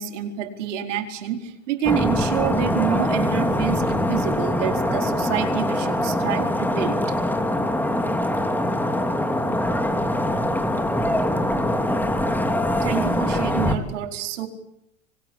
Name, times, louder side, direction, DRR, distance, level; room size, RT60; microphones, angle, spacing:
voice 1, 0.0-7.0 12.8-14.5, right 10 dB, 75° right, 6 dB, 4.5 m, -28 dB
sound 1, 1.8-13.8, left 1 dB, 5° left, 3.1 m, -23 dB
26.0 x 24.5 x 8.4 m, 0.79 s
hypercardioid pair, 100°, 37 cm